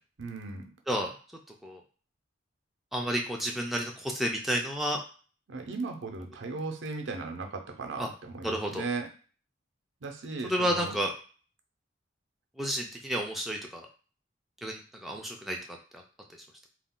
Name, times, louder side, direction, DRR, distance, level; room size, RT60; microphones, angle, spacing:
voice 1, 0.2-0.7 5.5-9.1 10.0-11.0, right 3 dB, 80° right, 4 dB, 0.6 m, -37 dB
voice 2, 2.9-5.0 8.0-8.1 8.4-8.8 10.4-11.1 12.6-13.9 14.6-15.6 15.9-16.0, equal, ahead, 0 dB, 0.3 m, -31 dB
2.4 x 2.1 x 3.6 m, 0.39 s
head